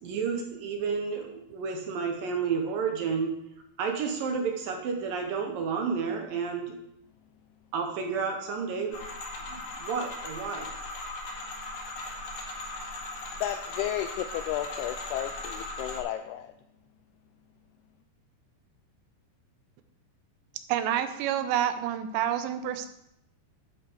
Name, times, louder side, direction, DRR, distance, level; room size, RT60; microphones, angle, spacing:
voice 1, 0.0-3.3 3.8-6.7 7.7-9.0 9.5-10.7, right 5 dB, 70° right, 3 dB, 2.3 m, -31 dB
sound 1, 8.9-16.0, left 2 dB, 60° left, 3.6 m, -38 dB
voice 2, 13.4-16.5, left 12 dB, 85° left, 8 dB, 2.3 m, -33 dB
voice 3, 20.7-22.9, right 10 dB, 90° right, 9 dB, 3.1 m, -28 dB
11.0 x 7.6 x 4.6 m, 0.81 s
omnidirectional pair, 5.0 m